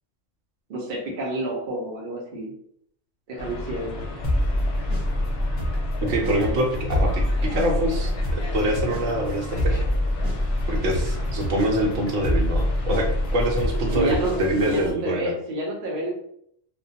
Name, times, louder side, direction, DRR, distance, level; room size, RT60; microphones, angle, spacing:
voice 1, 0.7-2.5 3.3-4.1 13.9-16.1, right 1 dB, 55° right, -1 dB, 0.7 m, -29 dB
sound 1, 3.4-14.8, left 2 dB, 65° left, 0.7 m, -35 dB
sound 2, 4.2-14.9, left 1 dB, 20° left, 0.7 m, -26 dB
voice 2, 6.0-9.8 10.7-15.3, right 1 dB, 80° right, 0 dB, 1.0 m, -25 dB
2.2 x 2.2 x 2.7 m, 0.69 s
omnidirectional pair, 1.3 m